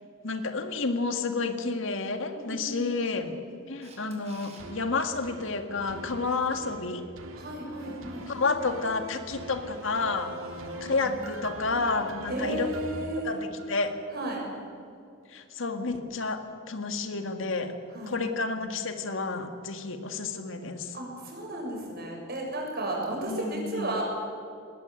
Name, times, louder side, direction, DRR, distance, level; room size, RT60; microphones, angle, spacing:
voice 1, 0.2-3.4 3.7-7.1 8.3-10.4 10.8-12.7 13.2-13.9 15.3-17.7 18.1-21.0 23.2-24.0, left 3 dB, 70° left, 7 dB, 1.9 m, -30 dB
voice 2, 2.3-2.9 3.2-3.3 7.3-8.3 10.4-11.2 12.3-13.3 14.1-14.4 17.9-18.2 20.9-24.0, right 1 dB, 50° right, 0 dB, 7.0 m, -34 dB
Camera, 3.8-4.6 11.4-11.5, right 4 dB, 35° right, 4.6 m, -51 dB
sound 1, 4.6-14.0 14.4-14.5, right 1 dB, 85° right, 2.5 m, -43 dB
20.5 x 19.5 x 9.2 m, 2.5 s
head